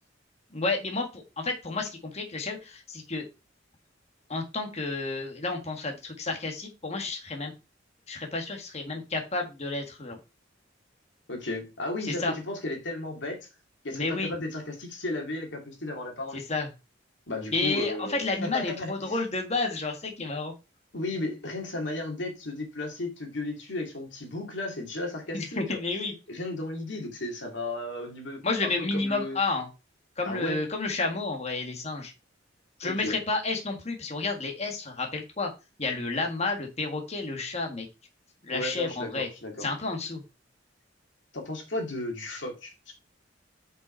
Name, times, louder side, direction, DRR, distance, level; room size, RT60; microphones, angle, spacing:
voice 1, 0.5-3.2 4.3-7.5 8.1-10.2 12.0-12.3 13.9-14.3 16.3-16.7 17.5-20.5 25.3-26.1 28.4-29.7 30.2-32.1 32.8-35.5 35.8-37.8 38.4-39.3 39.6-40.2, left 3 dB, 35° left, 1.7 m, -31 dB
voice 2, 11.3-13.4 13.8-16.4 17.3-19.2 20.9-25.8 26.3-29.4 30.2-30.6 32.8-33.2 38.5-39.7 41.3-42.9, left 2 dB, 70° left, 2.5 m, -34 dB
6.9 x 5.5 x 4.5 m
head